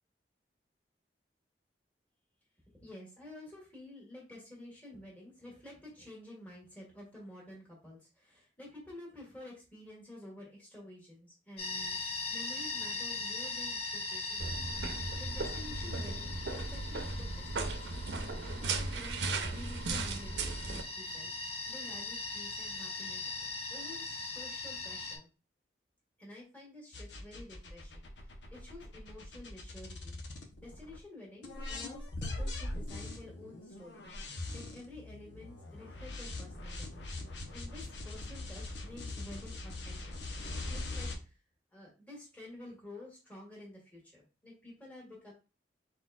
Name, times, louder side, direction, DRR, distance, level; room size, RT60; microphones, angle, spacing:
voice 1, 2.8-12.0 12.3-18.0 18.4-19.2 19.5-21.3 21.7-25.3 26.2-30.2 30.6-34.1 34.5-37.1 37.5-40.1 40.7-41.4 41.7-45.3, left 1 dB, 10° left, -4 dB, 1.7 m, -51 dB
sound 1, 11.6-25.2, left 3 dB, 35° left, 0.9 m, -40 dB
sound 2, 14.4-20.8, right 3 dB, 80° right, 0.7 m, -36 dB
sound 3, 26.9-31.0 31.4-41.2, left 2 dB, 85° left, 1.0 m, -42 dB
4.3 x 4.3 x 2.4 m, 0.33 s
head